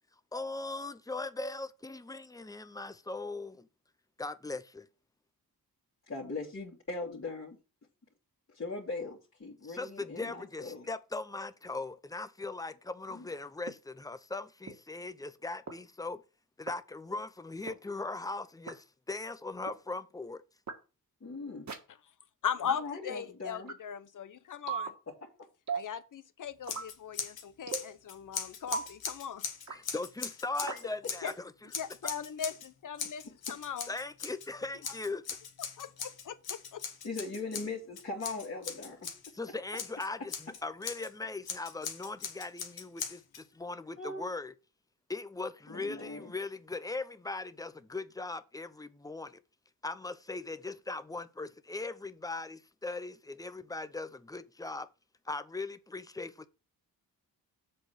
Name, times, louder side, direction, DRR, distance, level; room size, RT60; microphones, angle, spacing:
voice 1, 0.3-3.7 4.2-4.9 9.7-16.2 16.6-20.4 29.7-31.5 33.9-35.2 39.3-44.5 45.1-49.4 49.8-54.9 55.3-56.5, left 3 dB, 10° left, 0.7 m, -39 dB
voice 2, 6.1-7.6 8.5-10.9 13.1-13.3 21.2-21.7 22.6-23.7 25.1-25.3 37.0-39.1 44.0-44.3 45.7-46.3, left 3 dB, 40° left, 2.4 m, -40 dB
sound 1, 13.7-13.8 14.7-14.8 15.7-15.8 16.7-16.8 17.7-17.8 18.7-18.8 19.7-19.8 20.7-20.8 21.7-21.8 22.7-22.8 23.7-23.8 24.7-24.9 25.7-25.9 26.7-26.9 27.7-27.9 28.7-28.9 29.7-29.8 30.7-30.8, right 6 dB, 50° right, 1.8 m, -36 dB
voice 3, 22.4-24.9 25.7-29.4 31.2-31.3 31.8-33.9 35.8-36.8, left 8 dB, 60° left, 0.9 m, -39 dB
Scissors, 26.6-27.4 27.7-31.3 31.7-32.7 33.0-34.5 34.8-39.3 39.7-41.1 41.4-43.4, left 7 dB, 80° left, 1.5 m, -40 dB
7.6 x 4.1 x 6.7 m
cardioid pair, 90°, 36 cm